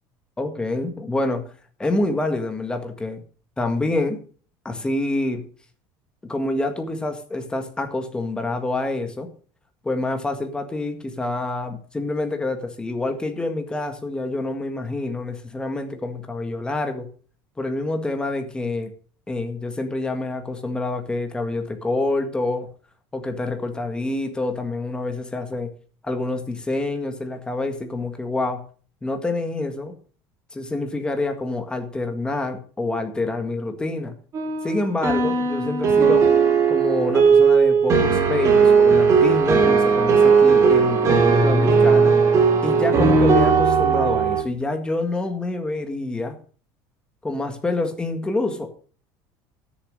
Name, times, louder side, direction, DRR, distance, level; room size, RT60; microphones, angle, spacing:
voice 1, 0.4-1.5 1.8-3.2 3.6-4.2 4.6-5.5 6.2-9.3 9.8-17.1 17.6-18.9 19.3-22.7 23.1-25.7 26.0-28.6 29.0-29.9 30.5-34.1 34.6-36.3 36.7-42.1 42.6-46.4 47.2-48.7, left 2 dB, 10° left, 6 dB, 1.7 m, -27 dB
sound 1, 34.3-44.4, right 5 dB, 30° right, 3.1 m, -17 dB
13.0 x 7.1 x 6.5 m, 0.42 s
cardioid pair, 155°, 9 cm